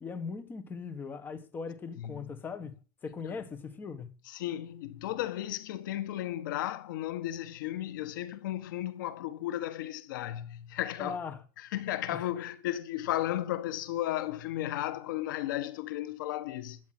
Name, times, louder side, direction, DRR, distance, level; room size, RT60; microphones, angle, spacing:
voice 1, 0.0-2.7 3.0-4.1 11.0-11.4 12.1-12.3, left 5 dB, 20° left, 1.6 m, -39 dB
voice 2, 4.2-11.2 11.6-16.8, left 13 dB, 80° left, 1.5 m, -34 dB
12.5 x 9.4 x 6.2 m
supercardioid pair, 160°, 11 cm